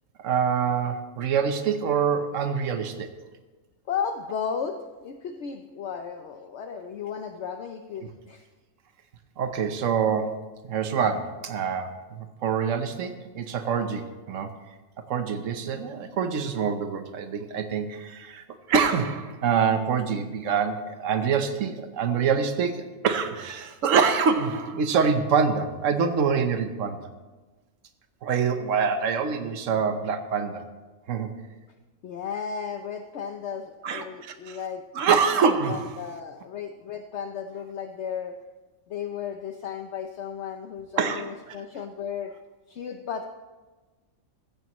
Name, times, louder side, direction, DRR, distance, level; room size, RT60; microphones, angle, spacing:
voice 1, 0.2-3.1 9.4-14.5 15.1-27.0 28.2-30.6 31.1-31.3 33.8-34.6 34.9-35.9 41.0-41.6, right 6 dB, 70° right, 8 dB, 1.3 m, -25 dB
voice 2, 3.9-8.4 32.0-34.8 35.3-38.4 38.9-42.3 42.7-43.3, left 7 dB, 60° left, 6 dB, 0.9 m, -34 dB
15.5 x 14.0 x 3.1 m, 1.3 s
omnidirectional pair, 1.4 m